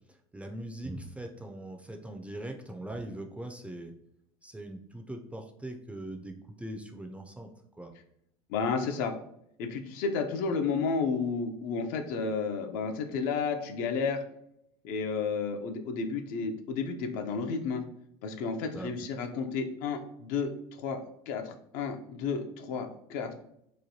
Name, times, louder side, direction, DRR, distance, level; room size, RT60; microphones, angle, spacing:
voice 1, 0.0-4.0 4.4-7.9 18.7-18.9, right 1 dB, 10° right, 4 dB, 0.3 m, -41 dB
voice 2, 8.5-9.1 9.6-14.2 14.8-17.8 18.2-21.0 21.3-23.3, left 5 dB, 70° left, 6 dB, 0.5 m, -32 dB
3.0 x 2.2 x 2.7 m, 0.75 s
supercardioid pair, 100°, 15 cm